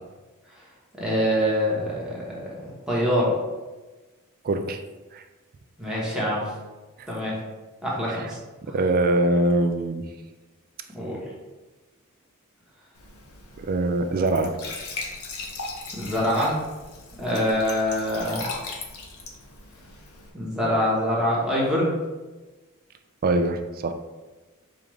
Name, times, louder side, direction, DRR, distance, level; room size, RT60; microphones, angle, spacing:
voice 1, 1.0-3.3 5.8-6.5 7.1-7.4 7.8-8.4 10.9-11.3 15.9-16.6 17.2-18.5 20.3-21.9, equal, 5° right, -6 dB, 1.0 m, -25 dB
voice 2, 4.4-4.8 5.1-5.2 7.0-7.1 8.1-8.3 8.7-10.0 13.6-14.6 23.2-23.9, right 2 dB, 40° right, 7 dB, 0.3 m, -23 dB
Glass / Trickle dribble / Fill (with liquid), 13.0-20.3, left 3 dB, 70° left, 0.7 m, -38 dB
4.9 x 2.4 x 3.1 m, 1.2 s
head